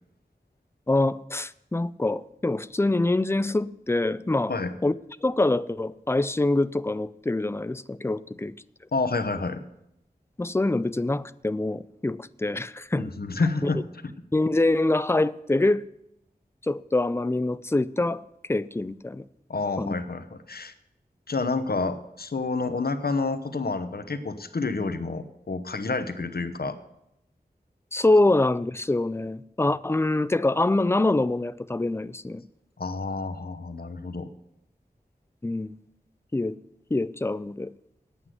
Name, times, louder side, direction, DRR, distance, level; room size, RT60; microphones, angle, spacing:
voice 1, 0.9-4.6 4.8-4.9 5.2-8.5 10.4-13.1 14.3-15.9 16.6-18.2 18.5-19.2 19.8-19.9 27.9-32.4 35.4-35.8 36.3-36.6 36.9-37.7, left 2 dB, 15° left, 0.4 m, -25 dB
voice 2, 8.9-9.6 12.9-14.1 19.5-20.7 21.3-26.8 32.8-34.3, left 3 dB, 70° left, 0.9 m, -29 dB
9.4 x 8.2 x 7.7 m
wide cardioid pair, 50°, 16 cm